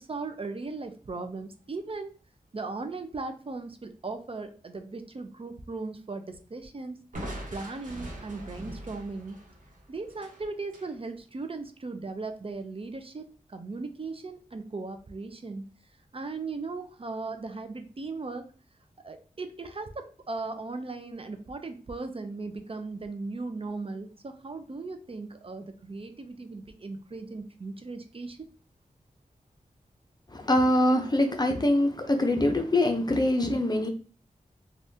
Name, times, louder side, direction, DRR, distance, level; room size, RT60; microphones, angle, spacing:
voice 1, 0.0-2.1 2.5-7.0 7.5-9.4 9.9-15.7 16.1-18.4 19.0-28.5, right 3 dB, 40° right, 6 dB, 0.5 m, -37 dB
Crushing, 7.1-10.9, right 1 dB, 60° right, 1.1 m, -42 dB
voice 2, 30.3-33.9, left 1 dB, 25° left, 5 dB, 0.7 m, -24 dB
3.3 x 2.4 x 2.7 m, 0.38 s
cardioid pair, 45°, 15 cm